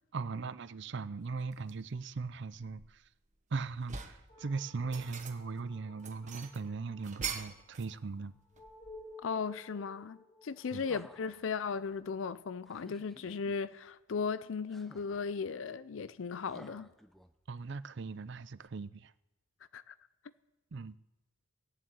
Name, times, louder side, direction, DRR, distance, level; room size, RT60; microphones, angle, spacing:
voice 1, 0.1-3.1 3.5-8.4 10.7-10.8 17.5-19.1 20.7-21.0, right 4 dB, 60° right, 0.5 m, -39 dB
sound 1, 1.5-1.8 2.3-3.3 3.6-4.3 4.7-5.6 6.0-9.2, right 6 dB, 35° right, 1.2 m, -43 dB
sound 2, 4.3-13.1, left 2 dB, 30° left, 3.4 m, -56 dB
voice 2, 9.2-10.2 10.4-16.9 19.7-19.9, left 5 dB, 75° left, 0.5 m, -36 dB
sound 3, 10.6-11.5 12.7-13.6 14.7-15.3 16.4-17.6 18.6-18.7, equal, ahead, 0.6 m, -55 dB
18.5 x 7.4 x 8.5 m
head